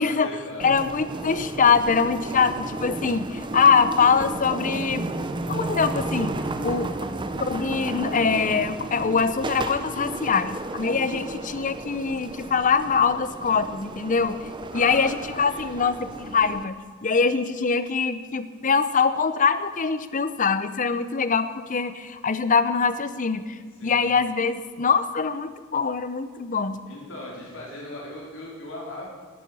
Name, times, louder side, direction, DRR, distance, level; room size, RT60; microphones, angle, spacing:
voice 1, 0.0-0.8 11.0-11.3 14.7-15.1 15.5-15.9 23.7-24.0 26.9-29.1, left 1 dB, 65° left, -4 dB, 4.4 m, -38 dB
voice 2, 0.6-5.1 5.5-6.4 6.6-6.9 7.5-14.4 14.7-26.8, left 5 dB, 35° left, 13 dB, 0.7 m, -23 dB
sound 1, 0.6-16.6, right 2 dB, 20° right, 0.7 m, -33 dB
11.5 x 9.5 x 8.8 m, 1.5 s
head